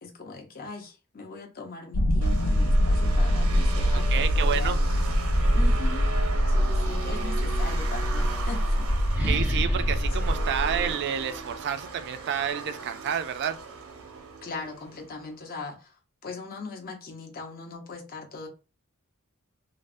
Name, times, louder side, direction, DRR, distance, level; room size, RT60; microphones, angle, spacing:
voice 1, 0.0-4.9 5.5-6.1 6.5-8.9 10.1-10.2 14.4-18.5, left 3 dB, 45° left, 0.7 m, -40 dB
sound 1, 1.9-10.9, equal, 80° left, 0.5 m, -25 dB
sound 2, 2.2-15.2, right 4 dB, 80° right, 0.7 m, -38 dB
sound 3, 3.7-7.0 7.9-11.5, equal, 10° right, 0.6 m, -29 dB
voice 2, 4.1-4.8 9.3-13.6, right 8 dB, 55° right, 0.3 m, -29 dB
3.3 x 2.0 x 2.5 m
head